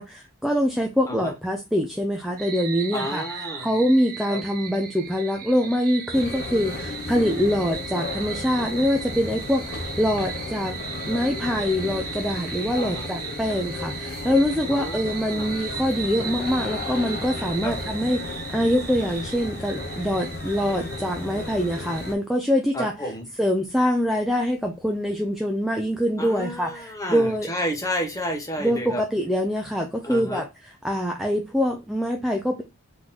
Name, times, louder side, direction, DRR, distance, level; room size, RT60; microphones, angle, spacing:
voice 1, 0.0-10.7 11.1-23.1 23.4-27.5 28.6-32.6, equal, ahead, 0.4 m, -24 dB
sound 1, 2.4-22.1, right 6 dB, 45° right, 0.7 m, -37 dB
voice 2, 2.9-3.7 4.3-4.4 12.8-13.1 14.7-15.5 17.6-17.7 22.7-23.3 26.2-29.0 30.0-30.4, equal, 15° left, 1.0 m, -31 dB
sound 2, 6.1-22.1, left 3 dB, 50° left, 0.5 m, -34 dB
3.8 x 3.0 x 3.9 m
head